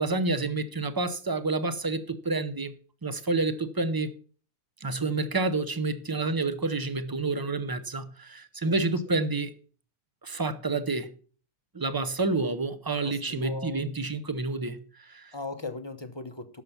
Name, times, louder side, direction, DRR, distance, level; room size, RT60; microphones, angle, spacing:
voice 1, 0.0-2.7 3.0-4.1 4.8-9.5 10.2-11.1 11.7-15.3, right 3 dB, 25° right, 0.4 m, -29 dB
voice 2, 13.0-13.9 15.3-16.6, left 3 dB, 25° left, 0.6 m, -38 dB
11.0 x 6.8 x 5.8 m
omnidirectional pair, 1.6 m